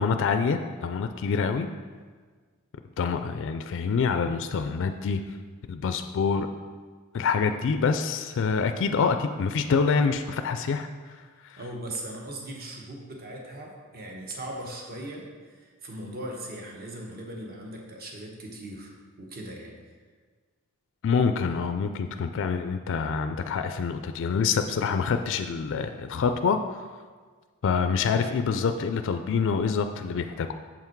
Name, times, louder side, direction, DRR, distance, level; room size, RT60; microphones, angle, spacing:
voice 1, 0.0-1.7 3.0-5.2 5.7-6.5 7.1-10.9 11.4-11.6 21.0-26.9 27.6-30.5, left 5 dB, 60° left, 8 dB, 0.3 m, -26 dB
voice 2, 11.6-18.9 19.2-19.7, right 1 dB, 45° right, 0 dB, 1.1 m, -39 dB
7.2 x 5.7 x 4.6 m, 1.5 s
head